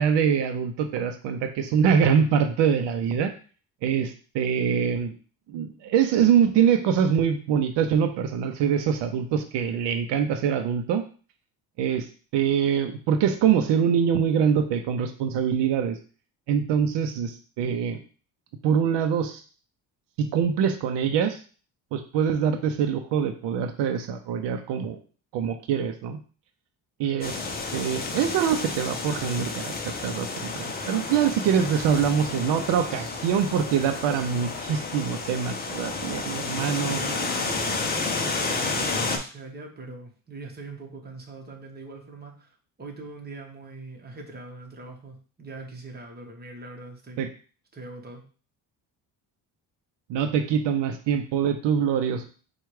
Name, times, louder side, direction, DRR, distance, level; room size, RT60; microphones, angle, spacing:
voice 1, 0.0-3.3 3.8-5.1 5.5-11.0 11.8-16.0 16.5-18.0 18.6-19.4 20.2-21.4 21.9-25.0 25.3-26.2 27.0-27.4 27.7-37.0 47.2-47.3 50.1-52.3, right 7 dB, 80° right, 7 dB, 0.6 m, -24 dB
sound 1, 27.2-39.2, left 3 dB, 25° left, 0.6 m, -31 dB
voice 2, 36.7-47.2 47.7-48.2, right 3 dB, 25° right, 1 dB, 1.1 m, -42 dB
4.5 x 2.4 x 4.7 m, 0.39 s
cardioid pair, 125°, 42 cm